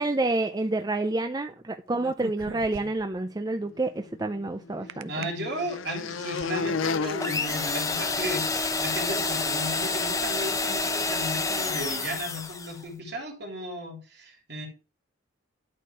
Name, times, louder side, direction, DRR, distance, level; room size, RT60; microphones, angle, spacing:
voice 1, 0.0-5.3, right 2 dB, 20° right, 7 dB, 0.5 m, -28 dB
sound 1, 1.9-3.2 4.9-5.2 5.9-6.5, right 5 dB, 80° right, 0.5 m, -41 dB
sound 2, 4.0-8.6, left 5 dB, 80° left, 0.6 m, -34 dB
voice 2, 4.8-14.7, equal, 55° right, 1 dB, 3.1 m, -35 dB
sound 3, 7.2-12.8, left 3 dB, 15° left, 0.7 m, -28 dB
11.5 x 4.4 x 4.8 m, 0.34 s
head